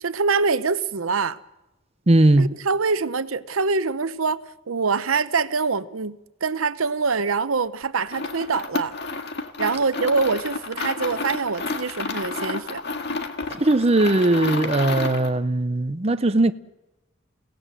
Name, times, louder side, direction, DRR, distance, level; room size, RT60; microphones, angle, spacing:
voice 1, 0.0-1.4 2.4-8.9 9.6-12.8, right 4 dB, 85° right, 0.9 m, -24 dB
voice 2, 2.1-2.5 13.6-16.5, right 2 dB, 30° right, 0.7 m, -19 dB
sound 1, 8.0-15.4, left 3 dB, 55° left, 1.8 m, -31 dB
29.5 x 17.5 x 7.6 m
head